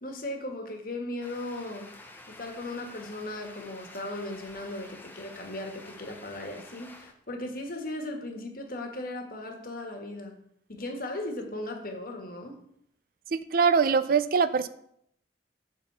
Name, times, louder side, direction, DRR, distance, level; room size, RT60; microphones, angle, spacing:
voice 1, 0.0-1.9 2.3-10.3 10.7-12.6, left 1 dB, 50° left, 4 dB, 1.5 m, -37 dB
sound 1, 1.2-7.1, left 2 dB, 10° left, 0.8 m, -49 dB
voice 2, 13.3-14.7, right 5 dB, 55° right, 14 dB, 0.4 m, -23 dB
8.1 x 3.9 x 6.6 m, 0.70 s
head